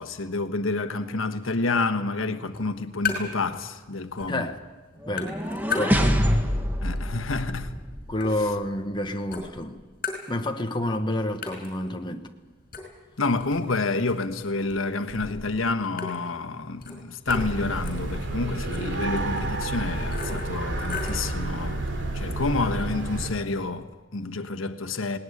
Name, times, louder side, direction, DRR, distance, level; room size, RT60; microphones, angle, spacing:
voice 1, 0.0-4.5 6.8-7.8 13.2-21.9 22.1-25.2, left 3 dB, 90° left, 1.3 m, -29 dB
sound 1, 2.5-3.5 3.8-4.5 4.8-6.4 6.8-9.0 9.3-10.8 11.0-11.1 11.4-21.3, left 5 dB, 45° left, 5.5 m, -37 dB
voice 2, 4.3-4.6 5.1-5.4 5.7-6.1 8.1-9.8 10.3-12.3, left 1 dB, 25° left, 1.2 m, -29 dB
sound 2, 5.0-8.2, equal, 10° right, 1.7 m, -25 dB
Museum Gallery Children in Other Room, 17.3-23.3, right 2 dB, 65° right, 2.8 m, -30 dB
19.0 x 18.5 x 9.7 m
head